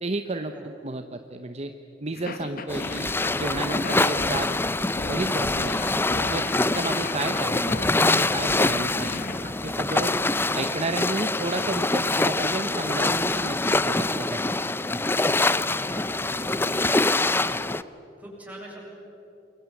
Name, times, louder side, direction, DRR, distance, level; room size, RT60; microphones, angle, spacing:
voice 1, 0.0-1.7 2.0-4.5 5.1-5.8 6.3-9.2 9.6-10.1 10.5-14.5, right 2 dB, 35° right, 7 dB, 1.0 m, -32 dB
sound 1, 2.1-9.5, left 2 dB, 55° left, 1.6 m, -36 dB
sound 2, 2.7-17.8, left 2 dB, 15° left, 0.5 m, -25 dB
voice 2, 15.7-17.3 18.2-18.8, equal, 10° right, -3 dB, 7.6 m, -44 dB
28.5 x 22.5 x 8.5 m, 3.0 s
head